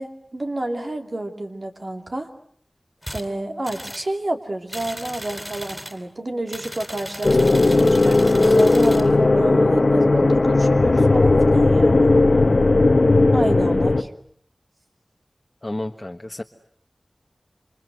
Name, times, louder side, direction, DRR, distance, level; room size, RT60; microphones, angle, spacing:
voice 1, 0.0-2.3 3.1-12.1 13.3-14.1, right 1 dB, 50° right, 4 dB, 2.7 m, -29 dB
sound 1, 3.0-3.3 3.6-4.1 4.7-6.0 6.5-9.1, equal, 5° right, 4.1 m, -36 dB
sound 2, 7.2-14.0, left 2 dB, 60° left, 1.2 m, -16 dB
voice 2, 15.6-16.4, left 1 dB, 30° left, 3 dB, 1.4 m, -31 dB
28.0 x 26.5 x 7.9 m, 0.63 s
wide cardioid pair, 65°, 0 cm